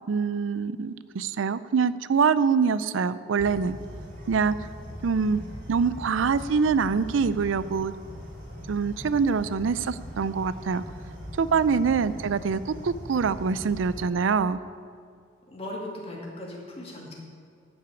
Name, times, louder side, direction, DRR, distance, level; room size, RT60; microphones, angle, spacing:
voice 1, 0.1-3.8 4.3-4.5 5.0-5.4 5.7-7.9 8.7-10.8 11.4-14.6, right 5 dB, 90° right, 15 dB, 0.4 m, -24 dB
sound 1, 3.4-14.1, equal, 45° right, 2.9 m, -41 dB
voice 2, 15.5-17.1, left 1 dB, 30° left, -2 dB, 2.4 m, -38 dB
12.0 x 6.2 x 8.3 m, 2.2 s
head